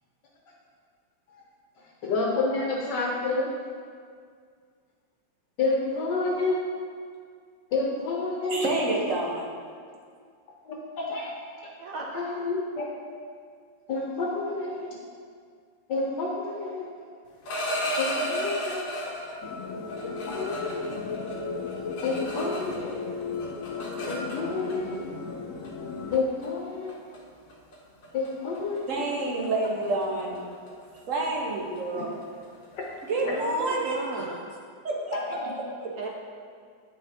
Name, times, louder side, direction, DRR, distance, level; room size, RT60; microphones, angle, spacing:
voice 1, 1.8-3.5 5.6-6.6 7.7-8.6 10.6-11.3 11.6-11.7 12.1-12.9 13.9-14.9 15.9-16.9 18.0-19.4 20.0-20.8 22.0-22.9 24.1-25.0 26.1-26.9 28.1-29.1 31.9-32.0 33.2-33.3 35.1-35.5, left 3 dB, 70° left, -2 dB, 1.4 m, -29 dB
voice 2, 8.5-9.5 28.9-30.4 31.1-32.1 33.1-34.2 34.8-35.2 35.8-35.9, right 2 dB, 50° right, -1 dB, 1.3 m, -28 dB
voice 3, 11.8-12.5 33.2-34.4 36.0-36.1, right 3 dB, 75° right, -1 dB, 0.8 m, -36 dB
sound 1, 17.3-19.4 19.9-22.9 23.2-24.7 25.6-25.8 26.1-26.5 26.9-27.2 27.5-27.7 28.0-28.3 28.5-33.9, equal, 50° left, 1.3 m, -35 dB
sound 2, 19.4-26.2, left 4 dB, 85° left, 0.7 m, -35 dB
9.3 x 5.5 x 3.5 m, 2.1 s
omnidirectional pair, 2.1 m